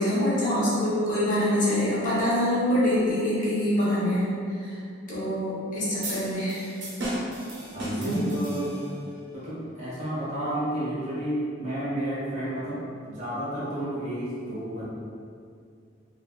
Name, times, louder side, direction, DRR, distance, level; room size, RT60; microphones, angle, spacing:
voice 1, 0.0-4.3 4.5-4.8 5.1-6.6 8.0-8.3, left 1 dB, 45° left, -9 dB, 0.9 m, -25 dB
sound 1, 6.0-9.1, right 1 dB, 65° right, 0.7 m, -35 dB
voice 2, 7.7-8.8 9.3-14.8, right 1 dB, 40° right, -10 dB, 1.1 m, -31 dB
3.5 x 2.4 x 2.3 m, 2.3 s
head